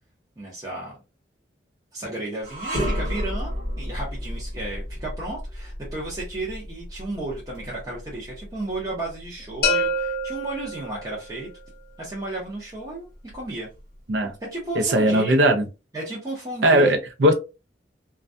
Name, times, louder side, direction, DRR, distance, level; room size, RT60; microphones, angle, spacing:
voice 1, 0.4-0.9 1.9-11.5 12.0-13.7 14.4-15.4 15.9-17.0, right 2 dB, 20° right, -5 dB, 0.7 m, -33 dB
sound 1, 2.4-11.7 12.1-12.3 13.1-14.0, equal, 50° right, 1.2 m, -33 dB
sound 2, 9.6-11.5, left 1 dB, 55° left, 0.8 m, -26 dB
voice 2, 14.8-15.7 16.6-17.3, right 1 dB, 80° right, 5 dB, 0.6 m, -18 dB
2.3 x 2.2 x 2.5 m, 0.29 s
head